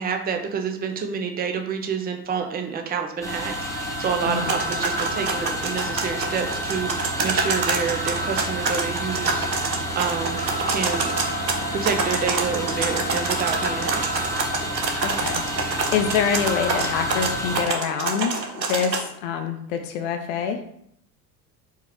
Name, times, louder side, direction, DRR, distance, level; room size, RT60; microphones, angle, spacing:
voice 1, 0.0-9.5 10.0-10.4 10.7-11.1 11.7-14.0, right 6 dB, 20° right, 5 dB, 0.5 m, -28 dB
sound 1, 2.4-2.5 4.3-5.5 7.3-8.5 10.3-11.5 13.3-14.5 16.3-17.3, right 2 dB, 70° right, 1.1 m, -35 dB
sound 2, 3.2-17.6, equal, 5° left, 1.1 m, -30 dB
sound 3, 4.4-19.0, right 4 dB, 85° right, 0.7 m, -27 dB
voice 2, 15.0-20.6, left 7 dB, 50° left, 6 dB, 0.6 m, -26 dB
4.5 x 3.0 x 3.4 m, 0.69 s
figure-of-eight pair, 70°, 49 cm